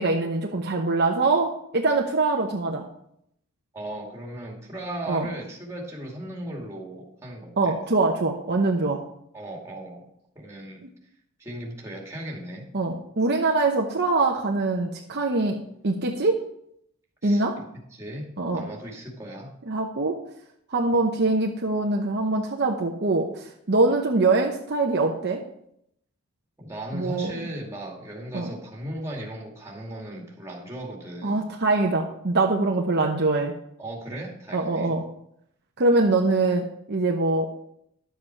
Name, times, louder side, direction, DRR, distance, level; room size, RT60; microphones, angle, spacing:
voice 1, 0.0-2.9 5.1-5.3 7.6-9.0 12.7-15.6 15.8-16.4 17.2-17.6 18.4-18.6 19.7-20.2 20.7-25.4 26.9-27.4 28.3-28.5 31.2-33.5 34.5-35.0 35.8-37.5, right 3 dB, 50° right, 1 dB, 0.9 m, -23 dB
voice 2, 3.7-7.7 9.3-10.1 10.3-10.9 11.4-12.7 17.2-17.4 17.9-18.3 18.5-19.5 26.6-31.5 33.8-34.9, right 1 dB, 15° right, -2 dB, 2.4 m, -37 dB
11.5 x 7.8 x 4.6 m, 0.74 s
head